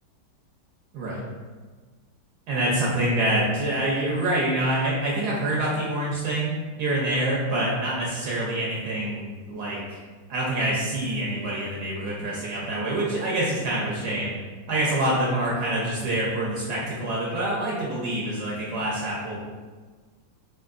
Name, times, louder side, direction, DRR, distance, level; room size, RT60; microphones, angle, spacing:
voice 1, 2.5-10.0 10.3-14.3 14.7-19.4, right 1 dB, 70° right, -5 dB, 1.1 m, -26 dB
4.4 x 2.6 x 2.4 m, 1.4 s
omnidirectional pair, 2.0 m